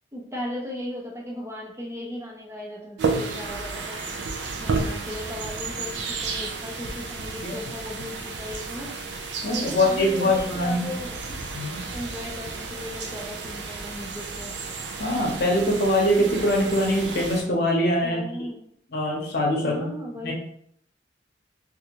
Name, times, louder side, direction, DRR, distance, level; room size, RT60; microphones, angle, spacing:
voice 1, 0.1-4.0 4.6-8.9 9.5-11.2 11.9-14.5 18.0-18.6 19.6-20.3, left 1 dB, 15° right, -2 dB, 0.5 m, -36 dB
sound 1, 3.0-17.4, right 4 dB, 65° right, 0.5 m, -32 dB
voice 2, 9.4-10.9 11.5-11.8 15.0-18.2 18.9-19.9 20.2-20.3, left 1 dB, 55° left, -1 dB, 0.8 m, -23 dB
3.4 x 2.6 x 2.9 m, 0.67 s
head